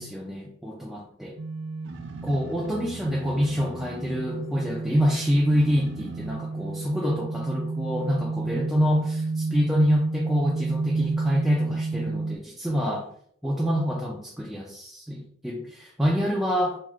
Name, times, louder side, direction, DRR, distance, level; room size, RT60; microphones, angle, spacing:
voice 1, 0.0-1.4 2.2-13.1 13.4-16.8, equal, ahead, -4 dB, 0.3 m, -26 dB
sound 1, 1.4-12.4, right 3 dB, 85° right, 0.4 m, -31 dB
3.1 x 2.3 x 3.5 m, 0.62 s
head